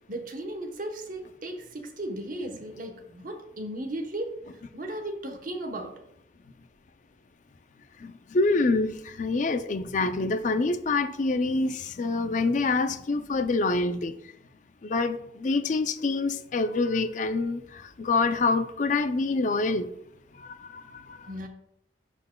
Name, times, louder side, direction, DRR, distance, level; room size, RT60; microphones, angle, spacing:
voice 1, 0.1-4.4 4.7-6.0 21.3-21.5, right 1 dB, 50° right, 3 dB, 0.9 m, -36 dB
voice 2, 8.0-14.1 14.8-17.6 18.0-19.9 20.4-20.8 21.1-21.2, left 3 dB, 45° left, 11 dB, 0.4 m, -26 dB
11.0 x 4.4 x 2.2 m, 0.75 s
head